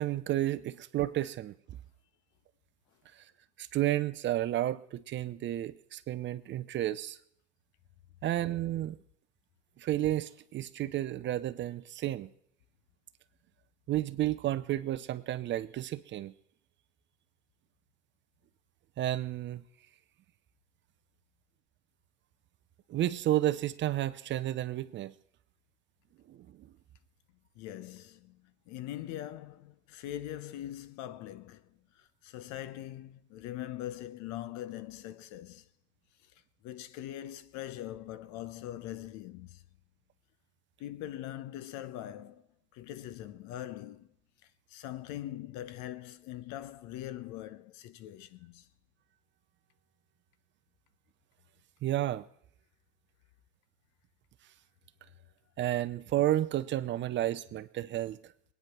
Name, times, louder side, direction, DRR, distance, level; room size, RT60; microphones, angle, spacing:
voice 1, 0.0-1.5 3.1-3.2 3.6-7.2 8.2-9.0 9.8-12.3 13.9-16.3 19.0-19.6 22.9-25.1 26.3-26.5 51.8-52.2 55.6-58.2, right 13 dB, 35° right, 0.6 m, -31 dB
voice 2, 27.5-35.7 36.6-39.6 40.8-42.4 42.7-44.1 44.7-48.7, left 13 dB, 50° left, 1.0 m, -42 dB
21.0 x 9.4 x 6.0 m
supercardioid pair, 115°, 35 cm